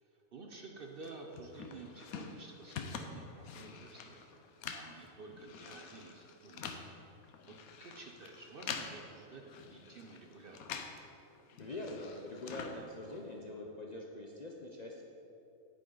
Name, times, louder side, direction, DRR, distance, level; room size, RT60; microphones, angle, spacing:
voice 1, 0.0-4.2 4.7-6.6 7.5-10.6, right 3 dB, 50° right, 2 dB, 0.7 m, -51 dB
sound 1, 1.0-11.1 11.3-13.4, left 6 dB, 85° left, 1.2 m, -46 dB
voice 2, 11.6-15.0, left 2 dB, 45° left, 0 dB, 0.6 m, -44 dB
10.0 x 9.0 x 3.9 m, 2.9 s
omnidirectional pair, 1.5 m